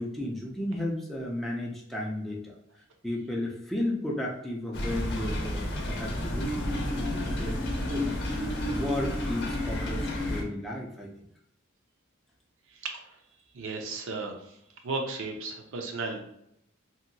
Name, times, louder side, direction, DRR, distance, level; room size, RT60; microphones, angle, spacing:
voice 1, 0.0-8.1 8.4-11.1, left 1 dB, ahead, -3 dB, 0.3 m, -34 dB
sound 1, 4.7-10.4, left 1 dB, 55° left, 0.6 m, -31 dB
voice 2, 12.7-13.2 13.5-14.6 14.8-16.2, right 3 dB, 65° right, 3 dB, 0.5 m, -35 dB
2.8 x 2.5 x 2.6 m, 0.74 s
head